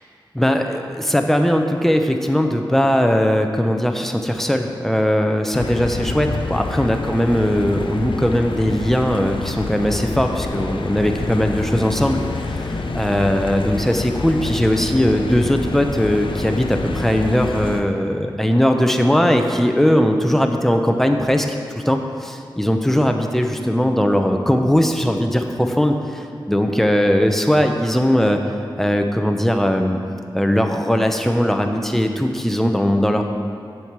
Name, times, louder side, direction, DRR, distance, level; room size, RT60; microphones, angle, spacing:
voice 1, 0.3-21.5 21.8-28.4 28.8-30.0 30.3-33.2, equal, 5° left, 4 dB, 0.8 m, -19 dB
sound 1, 5.5-17.8, left 3 dB, 75° left, 0.6 m, -27 dB
7.8 x 7.1 x 6.0 m, 2.5 s
wide cardioid pair, 70°, 9 cm